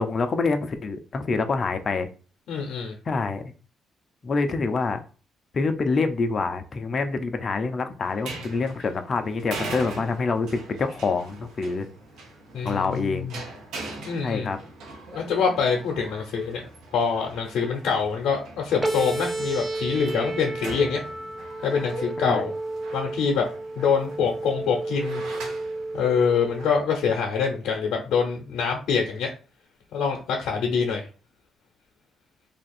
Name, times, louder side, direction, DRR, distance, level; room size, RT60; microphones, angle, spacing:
voice 1, 0.0-2.1 3.1-3.4 4.2-5.0 5.5-11.9 12.6-13.3 14.2-14.6 22.2-22.4, left 4 dB, 45° left, 7 dB, 0.5 m, -26 dB
voice 2, 2.5-2.9 12.5-13.3 14.1-14.5 15.1-21.0 21.6-22.5 22.9-23.4 23.8-25.2 25.9-29.3 29.9-31.1, left 6 dB, 80° left, 0 dB, 0.7 m, -25 dB
sound 1, 8.0-26.7, right 2 dB, 85° right, 1.0 m, -42 dB
sound 2, 18.8-26.8, right 2 dB, 15° right, 0.5 m, -32 dB
2.8 x 2.4 x 4.2 m, 0.35 s
cardioid pair, 90°, 0 cm